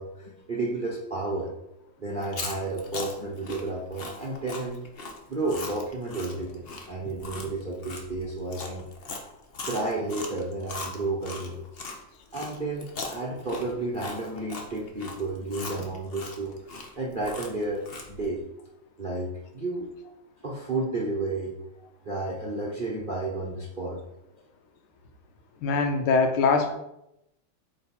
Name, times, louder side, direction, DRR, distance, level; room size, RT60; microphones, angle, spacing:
voice 1, 0.0-1.5 2.0-4.8 5.3-8.8 9.6-11.9 12.3-16.5 17.0-18.4 19.0-19.9 20.4-21.6 22.0-24.0, right 2 dB, 45° right, -3 dB, 0.7 m, -32 dB
Chewing mastication, 2.1-12.0 12.3-18.3, left 3 dB, 55° left, 0.6 m, -39 dB
voice 2, 25.6-26.8, left 4 dB, 80° left, 6 dB, 1.7 m, -22 dB
8.3 x 3.9 x 4.3 m, 0.84 s
omnidirectional pair, 2.3 m